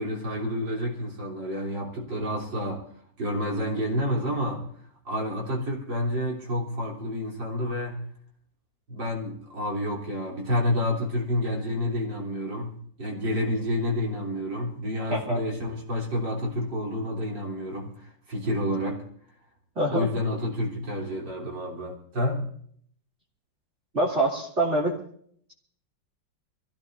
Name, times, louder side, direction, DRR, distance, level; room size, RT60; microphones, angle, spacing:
voice 1, 0.0-2.8 3.2-4.6 5.1-8.1 8.9-19.0 19.9-22.4, left 1 dB, 75° right, -2 dB, 4.1 m, -29 dB
voice 2, 15.1-15.4 19.8-20.1 23.9-24.9, right 1 dB, 35° right, -3 dB, 3.0 m, -25 dB
25.0 x 15.5 x 2.7 m, 0.62 s
omnidirectional pair, 2.0 m